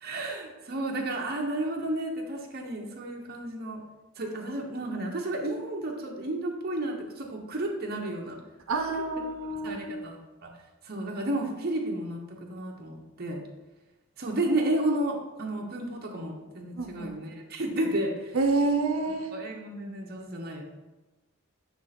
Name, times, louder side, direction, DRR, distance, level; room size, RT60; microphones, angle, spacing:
voice 1, 0.0-3.8 4.2-8.4 9.6-10.5 10.8-13.4 14.2-18.4 19.3-20.6, right 1 dB, 50° right, 0 dB, 0.9 m, -32 dB
voice 2, 8.7-9.9 16.7-17.2 18.3-19.3, right 3 dB, 80° right, 3 dB, 0.6 m, -28 dB
7.2 x 3.2 x 4.1 m, 1.1 s
head